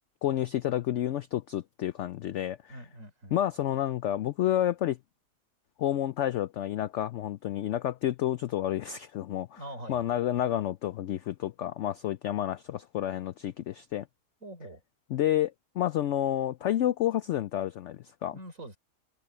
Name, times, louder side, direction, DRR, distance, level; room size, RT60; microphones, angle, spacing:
voice 1, 0.2-2.8 3.3-5.0 5.8-9.6 9.9-14.1 15.1-18.3, left 12 dB, 75° left, 0.6 m, -30 dB
voice 2, 2.7-3.4 9.5-10.0 14.4-14.8 18.3-18.8, right 1 dB, 50° right, 6.5 m, -44 dB
omnidirectional pair, 1.7 m